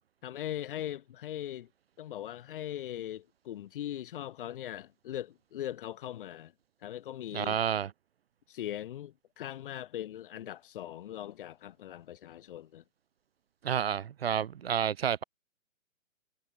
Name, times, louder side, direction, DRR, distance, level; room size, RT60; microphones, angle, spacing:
voice 1, 0.2-1.7 2.0-6.5 6.8-7.6 8.5-12.8, left 12 dB, 40° left, 2.1 m, -40 dB
voice 2, 7.3-7.9 13.6-15.2, right 8 dB, 50° right, 0.7 m, -30 dB
figure-of-eight pair, 135°, 40 cm